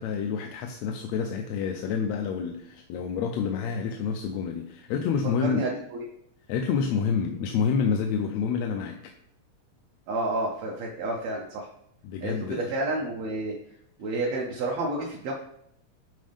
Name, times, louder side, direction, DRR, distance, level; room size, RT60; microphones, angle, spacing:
voice 1, 0.0-5.6 6.5-9.1 12.0-12.7, left 6 dB, 80° left, 3 dB, 1.7 m, -28 dB
voice 2, 5.4-6.0 10.1-11.7 12.2-13.6 14.0-15.3, right 2 dB, 70° right, -1 dB, 1.9 m, -30 dB
10.0 x 4.2 x 3.4 m, 0.73 s
omnidirectional pair, 3.4 m